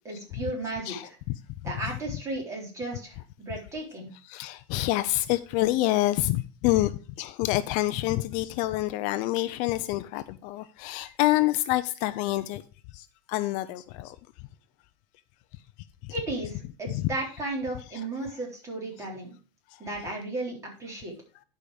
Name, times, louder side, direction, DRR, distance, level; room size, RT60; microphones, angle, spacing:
voice 1, 0.0-1.2 1.6-4.1 16.1-19.4 19.8-21.1, right 2 dB, 20° right, 3.8 m, -34 dB
voice 2, 0.9-1.7 4.3-12.6 12.9-14.2 16.0-16.1 16.9-17.1 19.7-19.8, left 17 dB, 50° left, 0.6 m, -27 dB
11.0 x 5.1 x 4.9 m
supercardioid pair, 150°, 16 cm